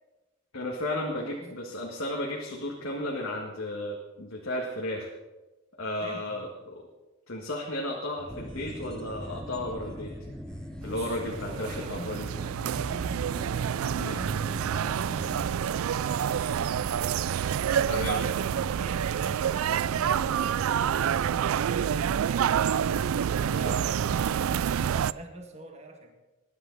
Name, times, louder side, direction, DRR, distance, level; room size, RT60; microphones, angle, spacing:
voice 1, 0.5-5.1 5.8-6.9 7.3-10.1 10.8-12.3 14.0-14.2 17.9-18.3 23.5-23.7, left 1 dB, 70° left, -2 dB, 1.9 m, -34 dB
voice 2, 1.2-1.7 6.0-6.4 10.8-13.3 13.9-16.9 18.3-22.7 23.3-26.1, right 1 dB, 30° right, 2 dB, 2.0 m, -46 dB
sound 1, 8.2-25.1, equal, 60° right, 3.0 m, -46 dB
sound 2, 8.3-19.2 19.4-19.5, equal, 5° left, 0.5 m, -43 dB
sound 3, 10.9-25.1, right 8 dB, 80° right, 0.3 m, -28 dB
21.0 x 11.0 x 4.1 m, 1.1 s
head